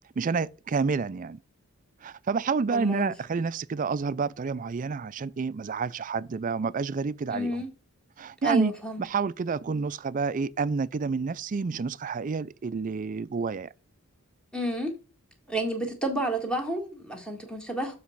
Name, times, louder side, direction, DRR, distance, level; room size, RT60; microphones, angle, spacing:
voice 1, 0.2-1.4 2.0-7.6 8.2-8.7 9.0-13.7, right 5 dB, 35° right, 0.4 m, -29 dB
voice 2, 2.7-3.1 7.3-7.7 8.4-9.1 14.5-14.9 15.5-17.9, right 1 dB, 5° left, 1.8 m, -30 dB
7.2 x 4.1 x 5.7 m
head